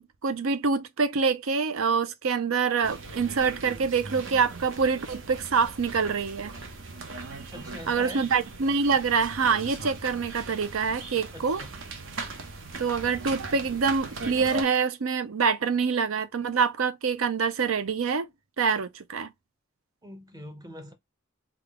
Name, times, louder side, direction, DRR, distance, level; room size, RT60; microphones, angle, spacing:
voice 1, 0.0-6.5 7.9-11.6 12.8-18.3 18.6-19.3, right 5 dB, 90° right, 0.6 m, -26 dB
sound 1, 2.8-14.6, right 3 dB, 70° right, 0.8 m, -39 dB
voice 2, 7.5-8.3 11.3-11.7 20.0-20.9, equal, 20° right, 0.7 m, -42 dB
3.6 x 2.3 x 3.5 m
head